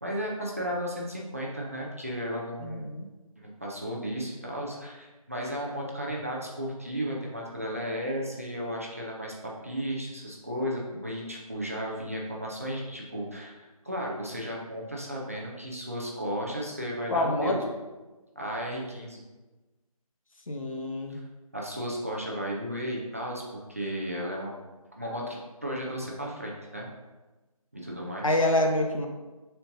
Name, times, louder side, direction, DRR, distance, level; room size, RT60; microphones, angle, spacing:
voice 1, 0.0-2.9 3.4-17.6 18.4-19.2 21.1-21.2 21.5-24.5 25.0-26.9 27.7-28.4, equal, 25° right, -3 dB, 0.7 m, -34 dB
voice 2, 2.6-3.1 17.1-17.7 20.5-21.2 28.2-29.1, left 1 dB, 60° left, 3 dB, 1.1 m, -27 dB
10.5 x 4.5 x 2.7 m, 1.2 s
figure-of-eight pair, 175°, 19 cm